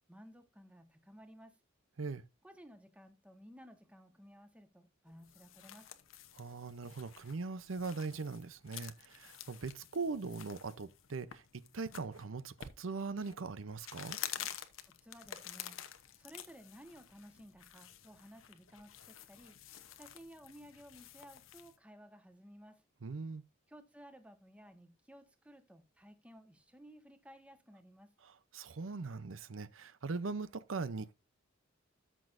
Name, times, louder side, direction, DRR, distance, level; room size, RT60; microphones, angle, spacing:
voice 1, 0.1-1.6 2.4-5.9 14.8-15.8 16.2-19.6 19.9-22.8 23.7-28.2, equal, 5° right, 1.3 m, -56 dB
sound 1, 5.1-21.8, left 10 dB, 85° left, 0.9 m, -50 dB
voice 2, 6.3-14.2 23.0-23.4 28.2-31.2, right 4 dB, 80° right, 0.7 m, -41 dB
13.5 x 6.2 x 2.6 m
head